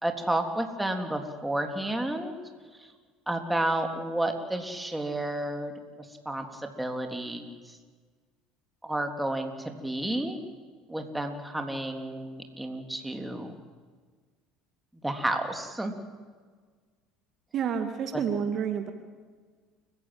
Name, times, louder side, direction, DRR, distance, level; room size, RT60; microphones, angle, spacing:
voice 1, 0.0-2.4 2.8-2.9 3.3-5.7 6.2-7.8 8.8-10.4 10.9-13.5 15.0-15.9 18.1-18.2, right 1 dB, 5° right, 4 dB, 3.4 m, -31 dB
voice 2, 17.5-18.9, right 7 dB, 50° right, 7 dB, 2.0 m, -29 dB
29.5 x 16.0 x 7.8 m, 1.5 s
hypercardioid pair, 80°, 0 cm